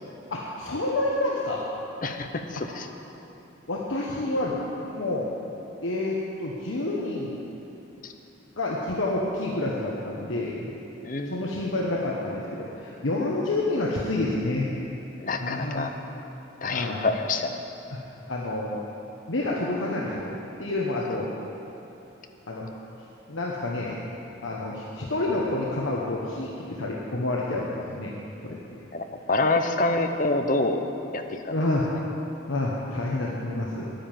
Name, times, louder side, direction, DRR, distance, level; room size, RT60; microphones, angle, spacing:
voice 1, 0.3-1.6 3.7-4.6 4.8-5.3 5.8-7.3 8.6-10.7 11.2-14.7 15.4-15.9 16.7-17.0 17.9-18.0 18.3-18.8 19.3-21.3 22.5-22.7 23.3-24.0 24.4-28.6 31.5-31.9 32.5-33.9, left 2 dB, 75° left, -3 dB, 1.2 m, -28 dB
voice 2, 2.0-2.9 8.0-8.1 11.0-11.4 15.2-15.9 16.6-17.6 28.9-30.8 31.1-31.5, left 2 dB, 40° left, 6 dB, 0.8 m, -27 dB
10.5 x 10.0 x 7.5 m, 3.0 s
head